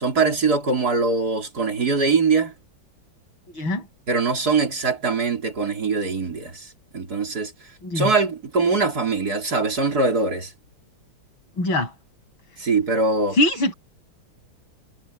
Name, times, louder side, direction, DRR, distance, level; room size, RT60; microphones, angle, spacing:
voice 1, 0.0-2.5 4.1-7.5 7.9-10.5 12.6-13.4, right 4 dB, 50° right, 4.3 m, -22 dB
voice 2, 11.6-11.9 13.4-13.7, left 1 dB, 85° left, 8.4 m, -22 dB
omnidirectional pair, 2.1 m